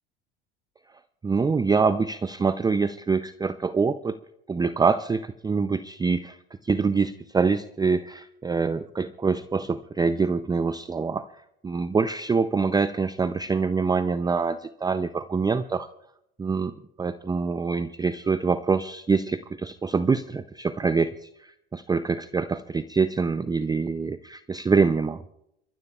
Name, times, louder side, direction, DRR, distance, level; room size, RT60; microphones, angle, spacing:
voice 1, 1.2-4.2 4.5-6.4 6.6-11.3 11.6-15.9 16.4-25.2, right 4 dB, 15° right, 13 dB, 0.5 m, -25 dB
29.5 x 14.5 x 2.4 m, 0.78 s
hypercardioid pair, 70°, 30 cm